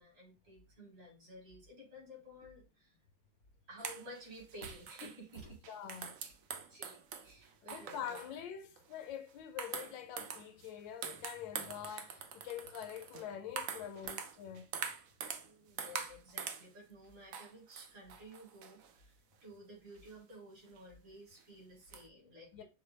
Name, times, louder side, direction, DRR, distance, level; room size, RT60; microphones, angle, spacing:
voice 1, 0.0-3.0 3.7-5.6 6.2-6.3 6.7-8.2 15.3-22.6, equal, 65° right, 3.7 m, -53 dB
sound 1, 3.8-8.4 8.8-9.0 9.6-10.7 11.0-15.5 15.8-16.7 17.3-18.9 20.1-20.2 20.8-20.9 21.3-21.4 21.9-22.0, right 7 dB, 85° right, 0.7 m, -44 dB
voice 2, 5.7-6.1 7.6-14.7 22.5-22.6, left 9 dB, 75° left, 1.3 m, -45 dB
6.5 x 2.3 x 3.2 m
omnidirectional pair, 2.1 m